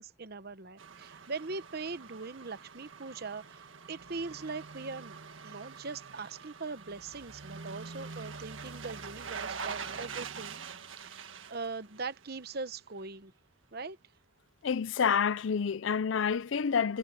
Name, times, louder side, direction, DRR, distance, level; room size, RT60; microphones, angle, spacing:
voice 1, 0.0-5.1 5.4-10.6 11.0-13.3 13.7-14.0, right 4 dB, 50° right, 1.0 m, -41 dB
sound 1, 0.8-12.7 13.0-13.1, right 5 dB, 75° right, 1.7 m, -44 dB
voice 2, 14.6-17.0, left 6 dB, 70° left, 0.5 m, -28 dB
head